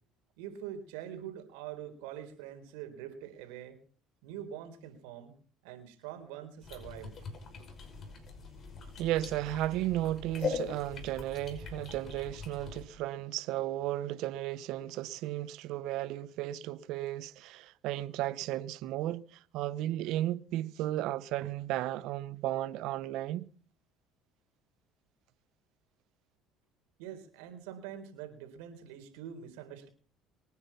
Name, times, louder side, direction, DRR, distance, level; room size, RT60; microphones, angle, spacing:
voice 1, 0.4-3.8 4.2-5.3 5.6-7.1 27.0-29.9, right 10 dB, 90° right, 3.9 m, -44 dB
sound 1, 6.6-12.8, left 5 dB, 45° left, 5.6 m, -41 dB
voice 2, 9.0-23.5, right 14 dB, 75° right, 0.9 m, -34 dB
24.5 x 9.7 x 5.8 m
supercardioid pair, 95°, 0 cm